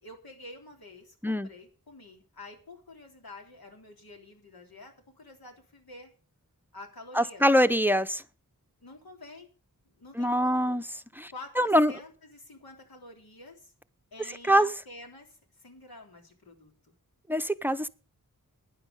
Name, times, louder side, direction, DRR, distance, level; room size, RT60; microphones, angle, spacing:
voice 1, 0.0-6.1 6.7-7.4 8.8-9.5 10.0-10.8 11.3-13.7 14.1-16.7, left 2 dB, 90° left, 3.5 m, -48 dB
voice 2, 7.1-8.2 10.2-10.8 11.2-11.9 14.4-14.7 17.3-17.9, equal, 5° right, 0.6 m, -24 dB
12.0 x 9.9 x 5.3 m
wide cardioid pair, 80°, 35 cm